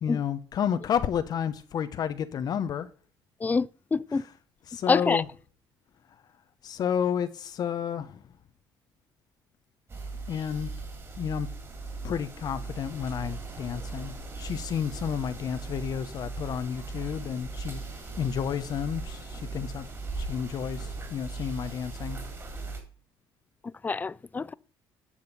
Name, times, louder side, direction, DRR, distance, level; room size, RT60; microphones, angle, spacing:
voice 1, 0.0-2.9 4.1-4.3 4.7-5.3 6.6-8.2 10.3-10.7 11.2-11.5 12.0-17.8 18.2-19.9 20.2-22.2, left 8 dB, 50° left, 0.9 m, -31 dB
voice 2, 3.4-4.2 4.9-5.2 23.8-24.5, left 4 dB, 20° left, 0.4 m, -26 dB
sound 1, 9.9-22.8, right 3 dB, 30° right, 3.6 m, -38 dB
9.9 x 6.5 x 5.3 m
cardioid pair, 110°, 9 cm